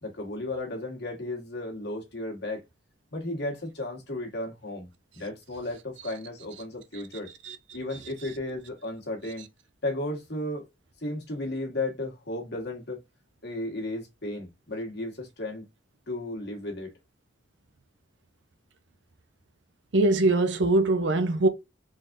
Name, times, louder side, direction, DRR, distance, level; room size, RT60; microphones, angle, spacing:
voice 1, 0.0-2.6 3.1-4.9 5.1-7.3 7.7-9.5 9.8-10.7 11.0-13.0 13.4-15.6 16.1-16.9, left 1 dB, 60° left, 1.5 m, -34 dB
voice 2, 19.9-21.5, right 2 dB, 70° right, 0.7 m, -22 dB
3.9 x 3.5 x 2.6 m
head